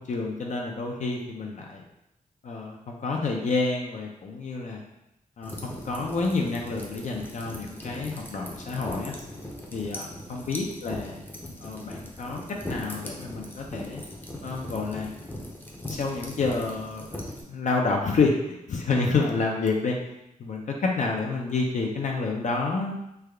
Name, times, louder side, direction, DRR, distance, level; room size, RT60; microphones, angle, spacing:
voice 1, 0.0-1.8 2.4-4.8 5.4-9.1 9.7-11.2 11.6-12.4 12.7-14.0 14.4-15.1 15.9-20.0 20.4-23.0, left 3 dB, 60° left, 0 dB, 0.5 m, -29 dB
sound 1, 5.4-17.4, left 1 dB, 15° left, 0.5 m, -39 dB
3.3 x 2.2 x 3.5 m, 0.85 s
wide cardioid pair, 110°, 14 cm